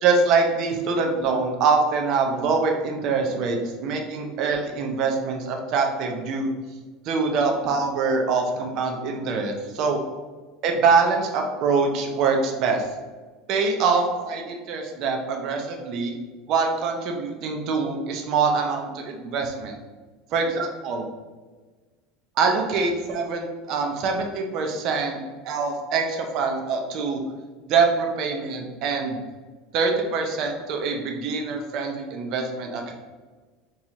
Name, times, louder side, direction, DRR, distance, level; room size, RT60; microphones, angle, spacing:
voice 1, 0.0-6.5 7.1-10.0 10.6-12.8 13.5-16.1 16.5-19.8 20.3-21.0 22.4-25.2 25.4-27.2 27.7-29.2 29.7-32.9, right 4 dB, 40° right, 2 dB, 0.4 m, -24 dB
4.1 x 2.3 x 2.8 m, 1.3 s
cardioid pair, 180°, 0 cm